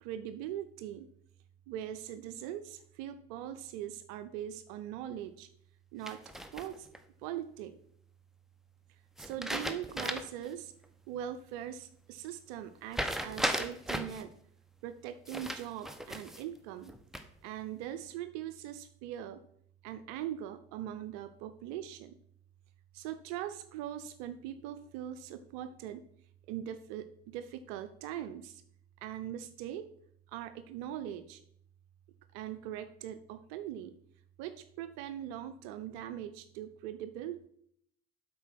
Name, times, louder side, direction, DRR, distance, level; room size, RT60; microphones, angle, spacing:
voice 1, 0.0-1.1 1.7-5.5 5.9-6.9 7.2-7.8 9.2-10.7 11.1-14.3 14.8-16.9 17.4-19.4 19.8-22.2 22.9-26.0 26.5-28.6 29.0-29.9 30.3-31.4 32.3-33.9 34.4-37.5, right 11 dB, 65° right, 10 dB, 0.6 m, -41 dB
sound 1, 6.1-7.0 9.2-10.4 10.8-10.9 12.9-14.2 15.3-16.4 16.9-17.5, equal, ahead, 0.9 m, -36 dB
8.0 x 4.8 x 6.2 m, 0.67 s
hypercardioid pair, 55°, 30 cm